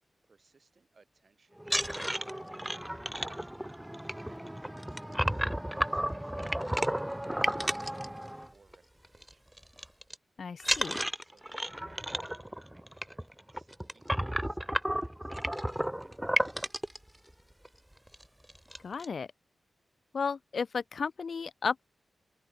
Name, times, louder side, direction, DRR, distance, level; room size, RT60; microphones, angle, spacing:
voice 1, 0.2-3.8 4.2-5.5 5.9-9.4 11.2-16.8, right 4 dB, 45° right, 7.2 m, -66 dB
sound 1, 1.6-8.7 9.0-9.3 9.6-10.1 10.6-17.0 17.6-17.7 18.1-18.2 18.5-19.1, equal, 5° right, 0.6 m, -33 dB
voice 2, 10.4-11.0 18.8-19.3 20.1-21.9, left 5 dB, 60° left, 0.4 m, -34 dB
open air
wide cardioid pair, 130°, 0 cm